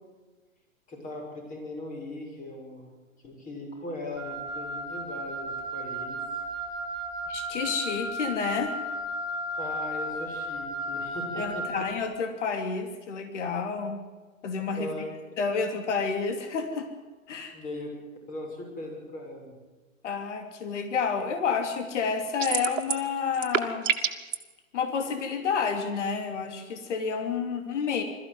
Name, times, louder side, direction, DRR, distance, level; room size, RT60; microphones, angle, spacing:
voice 1, 0.9-2.9 3.2-6.2 9.6-11.9 14.8-15.0 17.5-17.9 18.3-19.6, left 2 dB, 20° left, 2 dB, 6.2 m, -39 dB
Wind instrument woodwind instrument, 4.2-11.9, right 1 dB, 10° right, 3.1 m, -34 dB
voice 2, 7.3-8.7 11.4-14.0 14.4-15.1 15.4-16.9 17.3-17.5 20.0-23.9 24.7-28.0, left 5 dB, 60° left, 6 dB, 3.0 m, -30 dB
sound 1, 22.4-23.1 23.3-24.4, right 9 dB, 65° right, 2.1 m, -27 dB
21.5 x 14.0 x 9.4 m, 1.3 s
hypercardioid pair, 135°, 40 cm